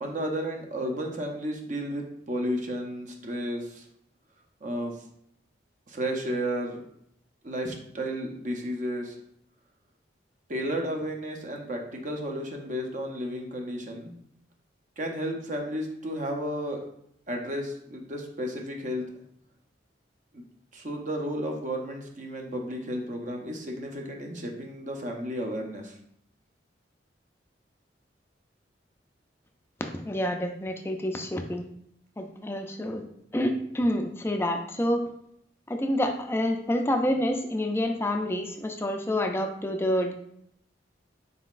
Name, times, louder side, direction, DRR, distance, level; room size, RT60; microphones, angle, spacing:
voice 1, 0.0-3.9 4.6-4.9 5.9-6.8 7.4-9.2 10.5-14.1 15.0-16.9 17.3-19.0 20.3-20.4 20.7-26.0, equal, 40° right, 2 dB, 0.7 m, -33 dB
voice 2, 29.9-31.7 32.2-33.0 33.3-35.0 35.7-40.1, left 1 dB, 15° left, 4 dB, 0.3 m, -28 dB
4.0 x 3.9 x 2.4 m, 0.72 s
head